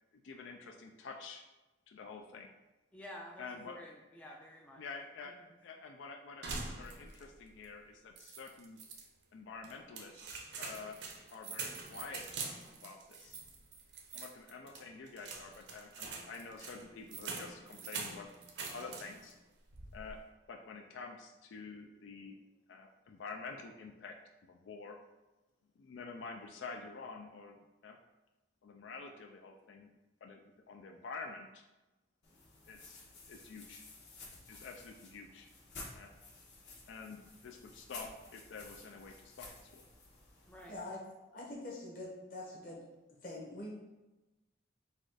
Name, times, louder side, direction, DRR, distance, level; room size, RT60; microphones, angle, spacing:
voice 1, 0.1-1.4 1.9-2.5 3.4-3.8 4.1-4.3 4.8-8.8 9.3-11.0 11.3-12.4 12.8-13.4 14.1-18.3 18.7-19.3 19.9-20.2 20.5-22.4 22.7-24.2 24.4-25.0 25.8-28.0 28.6-29.9 30.2-30.4 30.7-31.6 32.7-33.0 33.3-33.8 34.5-35.5 35.9-36.1 36.9-39.9, left 4 dB, 85° left, 3 dB, 0.4 m, -48 dB
voice 2, 2.9-4.8 5.3-5.4 40.5-40.7, left 1 dB, 5° left, -1 dB, 0.3 m, -51 dB
sound 1, 6.4-7.3 7.6-7.7 8.2-9.0 9.6-19.3 19.7-20.2, right 4 dB, 65° right, 0.6 m, -45 dB
sound 2, 32.2-40.8, left 3 dB, 65° left, 1.3 m, -53 dB
voice 3, 40.7-41.0 41.3-42.9 43.2-43.9, left 2 dB, 45° left, -3 dB, 1.1 m, -44 dB
4.1 x 2.4 x 4.7 m, 1.1 s
head